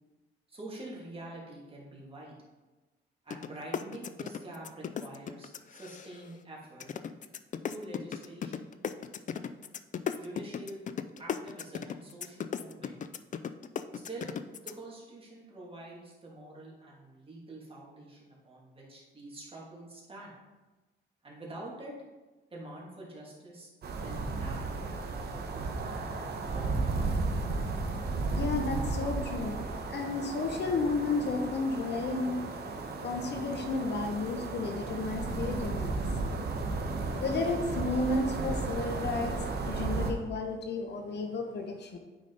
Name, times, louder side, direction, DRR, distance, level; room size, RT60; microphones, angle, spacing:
voice 1, 0.5-2.4 3.2-6.9 7.7-8.7 10.2-10.8 11.2-13.0 14.0-14.4 14.6-20.3 21.2-22.0 22.5-24.7 25.1-26.8, right 1 dB, 30° right, -4 dB, 2.5 m, -46 dB
sound 1, 3.3-3.5 3.7-6.3 6.8-14.7, left 8 dB, 40° left, 0.4 m, -36 dB
sound 2, 23.8-40.1, right 3 dB, 55° right, 1.2 m, -34 dB
voice 2, 28.3-32.4 33.0-36.0 37.2-39.3 39.6-42.0, left 3 dB, 60° left, 4 dB, 1.0 m, -32 dB
8.6 x 5.2 x 4.0 m, 1.2 s
cardioid pair, 90°, 20 cm